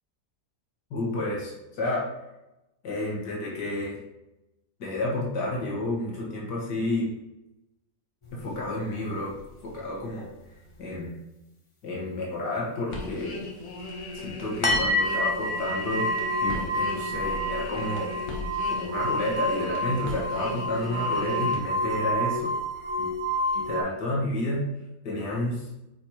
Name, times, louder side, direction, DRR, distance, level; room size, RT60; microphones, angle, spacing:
voice 1, 0.9-2.1 2.8-4.0 4.8-7.1 8.3-9.4 9.6-10.3 10.8-11.2 11.8-13.5 14.1-16.1 16.4-18.1 18.8-22.5 23.0-23.1 23.5-24.7 25.0-25.7, left 2 dB, 85° left, -4 dB, 2.1 m, -30 dB
sound 1, 8.2-8.9 9.2-10.4 10.7-10.8 13.8-13.9 14.6-23.8, equal, 25° left, 0.7 m, -29 dB
sound 2, 12.9-21.6, left 2 dB, 60° left, 1.6 m, -38 dB
8.6 x 4.7 x 2.9 m, 0.93 s
omnidirectional pair, 1.8 m